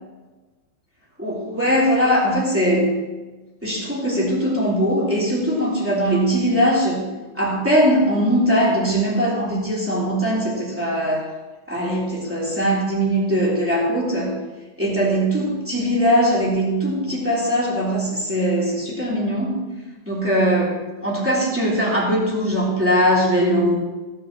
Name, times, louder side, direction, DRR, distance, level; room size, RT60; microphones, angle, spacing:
voice 1, 1.2-3.0 3.6-7.1 7.3-11.3 11.7-14.4 14.8-19.7 20.0-23.7, equal, 5° right, -6 dB, 2.1 m, -20 dB
17.5 x 10.0 x 3.0 m, 1.2 s
omnidirectional pair, 5.6 m